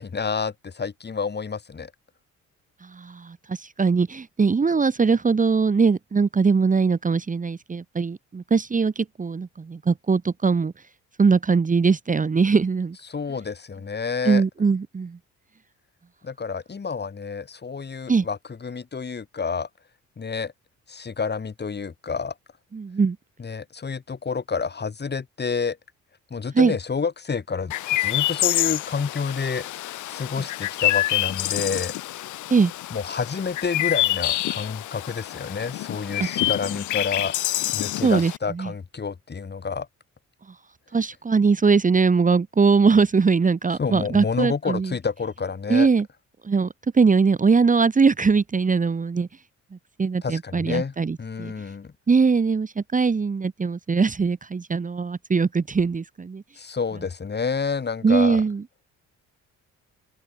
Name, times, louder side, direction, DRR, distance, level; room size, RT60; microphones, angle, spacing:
voice 1, 0.0-1.9 13.1-14.4 16.2-19.7 20.2-20.5 20.9-22.3 23.4-25.8 26.3-27.7 28.0-31.9 32.9-37.4 37.7-39.9 43.8-45.9 50.2-51.9 56.6-58.4, left 5 dB, 35° left, 3.6 m, -29 dB
voice 2, 2.9-10.7 11.2-13.0 14.2-15.2 18.1-18.3 22.7-23.2 26.5-26.7 32.5-32.7 38.0-38.3 38.6-38.7 40.9-44.9 45.7-46.0 46.4-46.7 46.9-49.3 50.0-51.5 52.1-56.4 58.0-58.6, right 5 dB, 25° right, 1.3 m, -21 dB
Chirp tweet, 27.7-38.4, left 15 dB, 75° left, 0.9 m, -27 dB
open air
cardioid pair, 90°, 30 cm